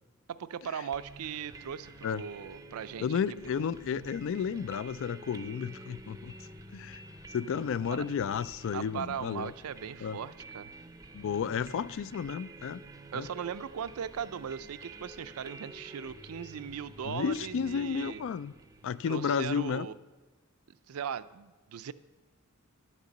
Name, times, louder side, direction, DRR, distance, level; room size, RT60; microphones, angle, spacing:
voice 1, 0.3-3.2 3.5-3.6 7.9-8.0 8.7-10.7 13.1-18.2 19.1-19.9 20.9-21.9, right 7 dB, 80° right, 0.4 m, -38 dB
sound 1, 0.9-19.6, right 2 dB, 15° right, 0.5 m, -50 dB
voice 2, 3.0-6.3 6.7-7.0 7.3-9.5 10.0-10.2 11.1-12.8 13.1-13.3 17.0-18.5 18.8-19.9, left 7 dB, 65° left, 0.3 m, -32 dB
10.5 x 6.6 x 7.2 m
head